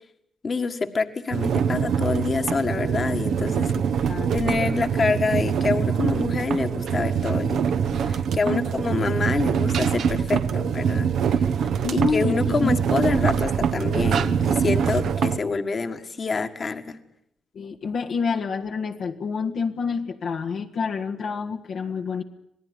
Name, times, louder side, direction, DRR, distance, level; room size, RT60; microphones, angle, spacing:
voice 1, 0.4-3.7 4.0-7.7 8.0-11.5 11.9-17.0, left 4 dB, 40° left, 7 dB, 1.9 m, -27 dB
sound 1, 1.3-15.4, right 7 dB, 75° right, 1.2 m, -24 dB
voice 2, 3.7-4.3 8.4-8.8 11.6-12.7 17.5-22.2, left 5 dB, 65° left, 1 dB, 1.7 m, -28 dB
26.5 x 18.0 x 9.5 m, 0.77 s
cardioid pair, 80°, 0 cm